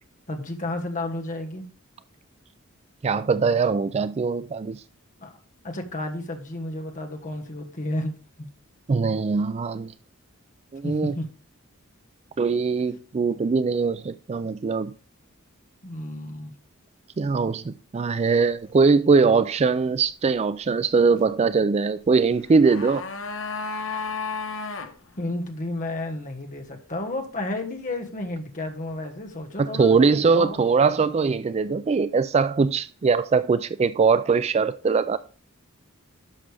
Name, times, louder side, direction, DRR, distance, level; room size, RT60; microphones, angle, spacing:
voice 1, 0.3-1.6 5.2-5.4 5.6-8.1 8.4-8.5 10.8-11.3 15.8-16.5 25.2-30.0 30.3-30.6, left 1 dB, 35° left, 1.5 m, -32 dB
voice 2, 3.0-4.8 8.9-9.9 10.7-11.1 12.4-14.9 17.2-23.0 29.6-35.2, right 4 dB, 30° right, 0.3 m, -21 dB
sound 1, 22.3-24.9 25.2-25.3, left 4 dB, 60° left, 1.0 m, -32 dB
11.0 x 6.6 x 3.4 m
head